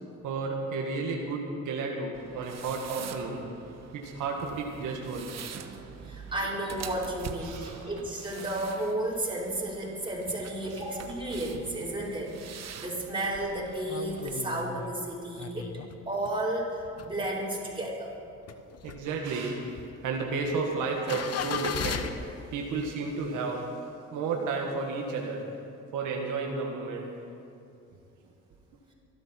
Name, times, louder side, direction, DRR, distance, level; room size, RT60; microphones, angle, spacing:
voice 1, 0.2-3.4 3.9-5.4 7.4-7.9 10.7-10.8 18.8-19.6 20.0-23.7 24.1-25.5 25.9-27.1, right 4 dB, 90° right, 0 dB, 1.8 m, -32 dB
sound 1, 2.1-14.3, right 7 dB, 60° right, 1.2 m, -45 dB
voice 2, 5.8-15.7 16.1-18.1, right 1 dB, 15° right, -5 dB, 4.7 m, -33 dB
sound 2, 11.6-12.3 12.7-12.8 13.0-16.4 16.8-17.8 18.2-22.1, left 7 dB, 55° left, 1.1 m, -37 dB
23.5 x 12.0 x 4.6 m, 2.6 s
cardioid pair, 90°, 30 cm